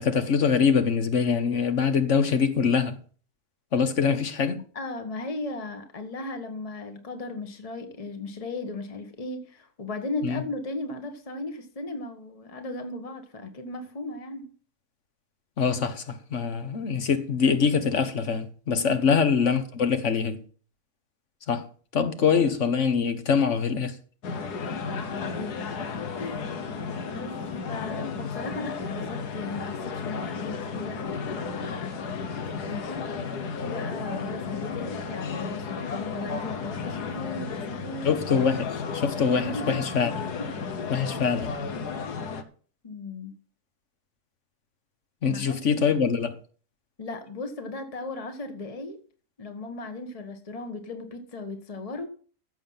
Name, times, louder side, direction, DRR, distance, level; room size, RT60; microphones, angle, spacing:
voice 1, 0.0-3.0 3.7-4.6 10.2-10.4 15.6-20.4 21.5-21.6 21.9-24.0 38.0-40.1 40.9-41.5 45.2-46.4, left 6 dB, 50° left, 1.5 m, -24 dB
voice 2, 4.7-14.5 18.7-19.0 25.2-25.7 26.2-26.5 27.1-31.9 32.5-33.1 33.6-38.1 39.4-39.8 40.4-40.5 42.8-43.3 45.3-46.0 47.0-49.0 49.4-52.1, left 2 dB, 25° left, 1.4 m, -36 dB
sound 1, 24.2-42.4, left 5 dB, 85° left, 1.7 m, -33 dB
14.5 x 7.3 x 5.7 m
omnidirectional pair, 1.7 m